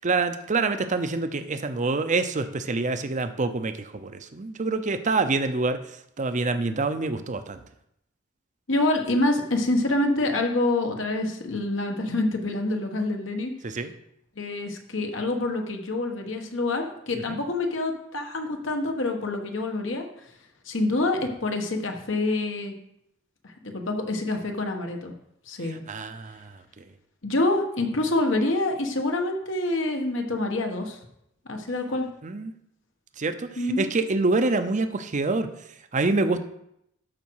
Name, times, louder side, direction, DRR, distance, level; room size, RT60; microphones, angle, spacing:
voice 1, 0.0-5.8 6.2-7.6 13.6-13.9 17.3-17.4 25.9-26.5 32.2-32.5 33.2-33.5 33.8-35.5 35.9-36.4, right 3 dB, 40° right, 10 dB, 0.7 m, -26 dB
voice 2, 8.7-13.5 14.4-20.1 20.7-22.7 23.6-25.1 25.5-25.8 27.2-31.0 31.5-32.0 33.6-33.9, left 2 dB, 70° left, 3 dB, 1.4 m, -26 dB
12.5 x 5.0 x 4.7 m, 0.78 s
head